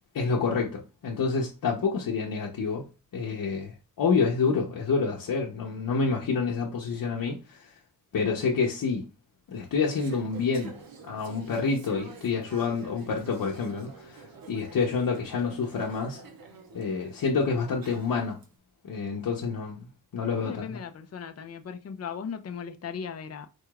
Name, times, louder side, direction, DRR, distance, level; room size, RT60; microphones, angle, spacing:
voice 1, 0.1-2.9 3.1-7.7 8.1-9.1 9.5-10.7 11.0-16.2 16.7-18.4 18.8-19.9 20.1-20.8, left 5 dB, 70° left, 0.8 m, -28 dB
Conversation / Chatter, 9.5-18.5, right 4 dB, 80° right, 1.0 m, -48 dB
voice 2, 20.4-23.5, left 7 dB, 45° left, 0.5 m, -37 dB
4.5 x 2.4 x 4.7 m
wide cardioid pair, 175°, 35 cm